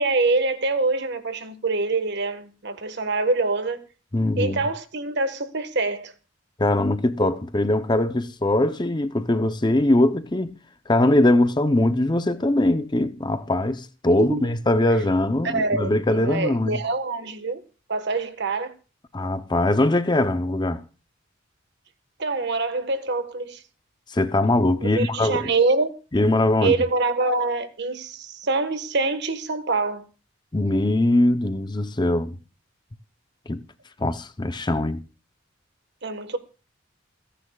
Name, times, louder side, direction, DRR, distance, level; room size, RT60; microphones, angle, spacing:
voice 1, 0.0-3.8 4.4-6.1 14.2-14.5 15.4-15.9 16.2-17.6 17.9-18.7 22.2-23.6 24.8-25.9 26.6-30.0 36.0-36.4, right 3 dB, 55° right, 1.5 m, -25 dB
voice 2, 4.1-4.6 6.6-10.5 10.9-16.8 19.1-20.8 24.1-25.5 26.1-26.8 30.5-32.3 33.5-33.6 34.0-35.0, left 1 dB, 20° left, 0.7 m, -21 dB
29.0 x 10.0 x 2.4 m
head